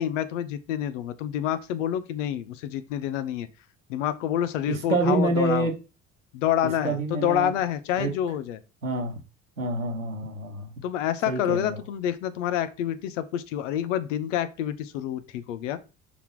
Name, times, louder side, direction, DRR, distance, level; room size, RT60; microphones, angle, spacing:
voice 1, 0.0-3.5 3.9-5.7 6.3-8.6 10.8-15.8, left 10 dB, 70° left, 0.7 m, -28 dB
voice 2, 4.7-5.8 6.6-7.5 8.0-8.1 8.8-9.2 9.6-10.7 11.3-11.8, right 2 dB, 90° right, 0.9 m, -27 dB
5.7 x 4.0 x 4.7 m
figure-of-eight pair, 50°, 39 cm